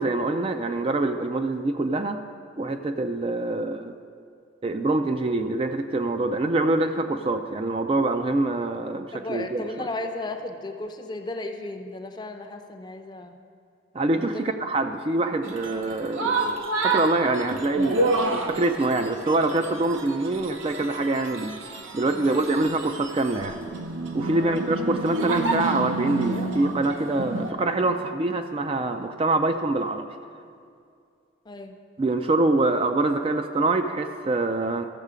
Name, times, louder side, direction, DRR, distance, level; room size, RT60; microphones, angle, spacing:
voice 1, 0.0-2.2 2.6-4.0 4.6-9.9 13.9-21.6 21.9-23.6 24.1-30.1 32.0-34.9, right 2 dB, 30° right, 7 dB, 0.3 m, -25 dB
voice 2, 9.1-13.4 14.2-14.5 22.1-22.5 24.4-24.6 31.5-31.8, left 2 dB, 20° left, 6 dB, 0.5 m, -35 dB
sound 1, 15.4-27.5, right 3 dB, 85° right, 0.9 m, -29 dB
14.0 x 6.5 x 4.9 m, 2.3 s
head